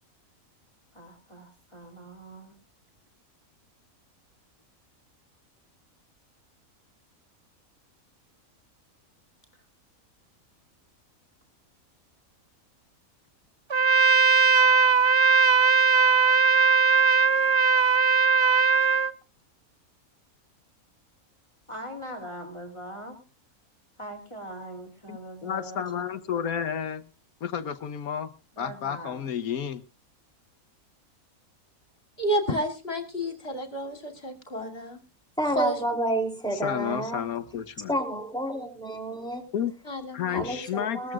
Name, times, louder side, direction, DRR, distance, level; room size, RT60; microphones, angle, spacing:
voice 1, 0.9-2.6 9.5-9.6 21.7-23.2 24.0-26.0 28.5-29.3, right 1 dB, 20° left, 2 dB, 3.2 m, -41 dB
Trumpet, 13.7-19.1, right 5 dB, 45° right, 0.3 m, -19 dB
voice 2, 25.1-27.0 27.4-28.3 28.6-29.8 36.5-38.0 39.5-39.7 40.1-41.1, left 8 dB, 80° left, 11 dB, 1.4 m, -31 dB
voice 3, 32.2-35.0 35.6-35.8 39.9-40.6, right 1 dB, 45° left, 3 dB, 3.3 m, -30 dB
voice 4, 35.4-37.2 37.9-39.5 40.3-41.1, right 1 dB, 5° left, 3 dB, 3.1 m, -30 dB
21.5 x 14.0 x 2.4 m, 0.32 s
omnidirectional pair, 1.5 m